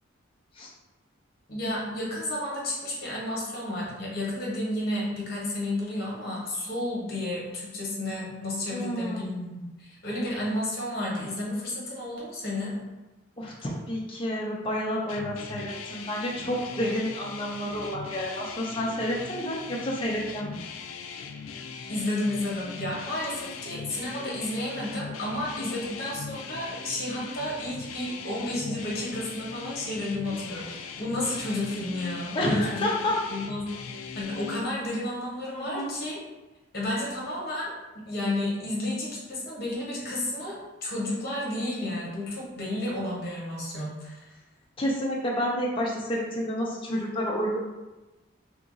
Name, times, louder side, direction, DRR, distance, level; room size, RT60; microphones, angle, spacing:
voice 1, 1.5-12.8 21.9-32.8 33.3-33.7 34.1-36.2 36.7-44.3, left 1 dB, 50° left, -5 dB, 1.1 m, -32 dB
voice 2, 8.7-9.3 13.4-20.6 25.6-25.8 32.3-33.1 35.5-35.9 44.8-47.7, equal, 25° left, -3 dB, 0.5 m, -30 dB
sound 1, 15.1-34.6, left 6 dB, 85° left, 0.3 m, -40 dB
2.9 x 2.5 x 3.8 m, 1.1 s
head